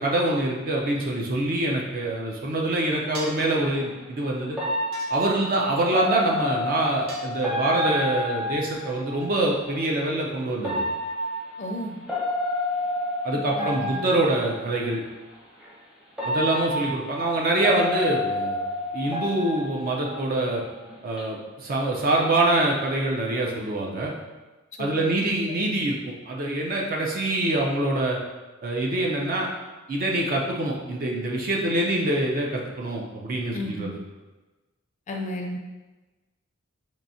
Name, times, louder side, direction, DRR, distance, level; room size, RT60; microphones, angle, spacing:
voice 1, 0.0-4.6 5.1-10.8 13.2-15.0 16.2-18.6 18.9-20.6 21.0-24.1 24.8-28.2 28.6-29.5 29.9-34.0, right 2 dB, 45° right, -1 dB, 0.5 m, -25 dB
sound 1, 3.1-3.2 4.6-9.3 10.6-14.8 15.6-15.7 16.2-20.6 20.9-21.2, left 1 dB, 5° right, 0.7 m, -29 dB
sound 2, 3.1-3.5 4.9-5.6 7.1-7.8, right 1 dB, 80° right, 0.8 m, -40 dB
voice 2, 11.6-12.0 13.6-14.1 24.8-25.2 33.5-33.9 35.1-35.6, left 1 dB, 35° left, 2 dB, 0.4 m, -33 dB
4.6 x 2.7 x 2.7 m, 1.2 s
head